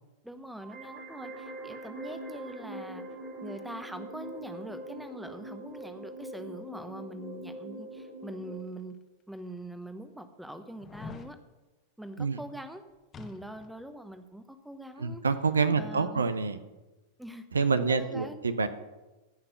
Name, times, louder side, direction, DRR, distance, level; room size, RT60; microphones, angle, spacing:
voice 1, 0.2-3.0 3.4-8.9 9.3-11.4 12.0-12.8 13.2-15.2 15.8-16.2 17.2-18.4, right 1 dB, 5° right, 9 dB, 1.0 m, -43 dB
sound 1, 0.6-8.6, right 1 dB, 25° right, 2.6 m, -43 dB
sound 2, 8.8-8.9 9.6-9.7 10.8-11.3 13.1-13.8 14.1-14.2, left 5 dB, 25° left, 1.2 m, -45 dB
voice 2, 15.0-16.6 17.5-18.7, right 4 dB, 75° right, 12 dB, 0.7 m, -27 dB
15.5 x 5.8 x 6.7 m, 1.1 s
figure-of-eight pair, 90°, 0 cm